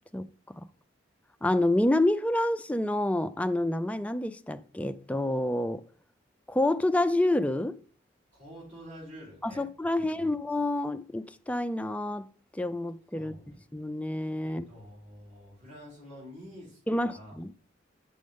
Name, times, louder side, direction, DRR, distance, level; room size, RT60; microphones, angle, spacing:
voice 1, 1.4-5.8 6.5-7.8 9.4-12.3 12.5-13.3 13.7-14.7 16.9-17.5, left 1 dB, 5° left, 0.4 m, -28 dB
voice 2, 8.3-10.3 13.1-13.6 14.4-17.4, equal, 45° right, 4.6 m, -48 dB
9.3 x 6.4 x 3.6 m
head